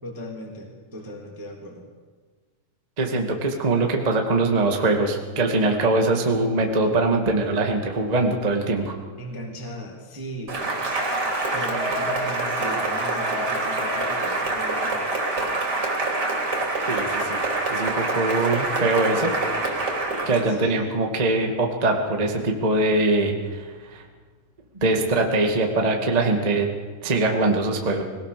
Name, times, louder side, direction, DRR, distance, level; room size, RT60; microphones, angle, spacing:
voice 1, 0.0-1.9 9.2-10.6 11.5-15.0 20.5-20.9, equal, 5° right, 0 dB, 2.0 m, -37 dB
voice 2, 3.0-8.9 16.9-17.4 17.7-19.3 20.2-24.0 24.8-26.7 27.0-28.0, right 2 dB, 75° right, 2 dB, 0.3 m, -22 dB
Cheering / Applause, 10.5-20.5, right 2 dB, 25° right, 3.4 m, -26 dB
21.5 x 18.5 x 6.8 m, 1.5 s
omnidirectional pair, 4.9 m